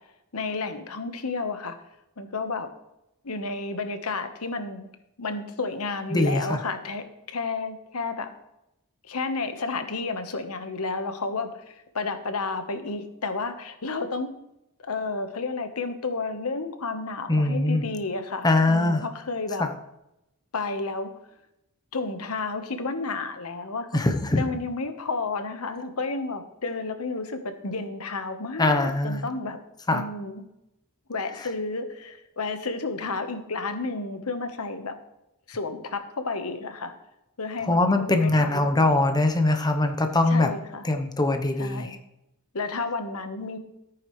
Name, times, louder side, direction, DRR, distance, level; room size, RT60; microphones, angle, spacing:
voice 1, 0.3-1.8 2.2-2.7 3.2-4.9 5.2-7.0 7.3-8.3 9.1-14.3 14.9-19.6 20.5-21.1 21.9-24.0 24.4-29.6 29.9-30.4 31.1-35.0 35.5-36.9 37.4-38.9 40.3-40.9 41.6-42.0 42.5-43.6, left 3 dB, 85° left, 8 dB, 1.2 m, -31 dB
voice 2, 6.1-6.6 17.3-17.9 18.4-19.0 23.9-24.4 28.6-29.2 29.9-30.0 37.7-40.5 40.8-41.9, left 2 dB, 20° left, 6 dB, 0.9 m, -22 dB
14.0 x 9.2 x 3.2 m, 0.87 s
head